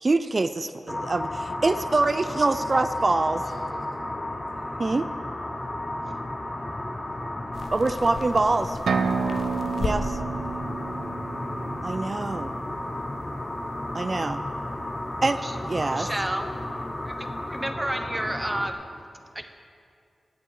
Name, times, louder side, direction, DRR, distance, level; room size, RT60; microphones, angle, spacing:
voice 1, 0.0-3.4 4.8-5.1 7.7-8.8 9.8-10.2 11.8-12.6 13.9-14.4 15.2-16.1, right 3 dB, 40° right, 11 dB, 0.4 m, -25 dB
sound 1, 0.9-18.7, left 1 dB, 25° left, 0.9 m, -33 dB
voice 2, 2.5-3.9 4.2-4.9, left 2 dB, 60° left, -1 dB, 2.2 m, -48 dB
sound 2, 7.5-17.7, left 3 dB, 80° left, 0.8 m, -41 dB
sound 3, 8.9-12.6, right 5 dB, 90° right, 0.6 m, -30 dB
voice 3, 15.9-16.6 17.0-19.4, right 1 dB, 15° right, 7 dB, 0.9 m, -32 dB
17.0 x 8.2 x 4.9 m, 2.4 s
cardioid pair, 65°, 0 cm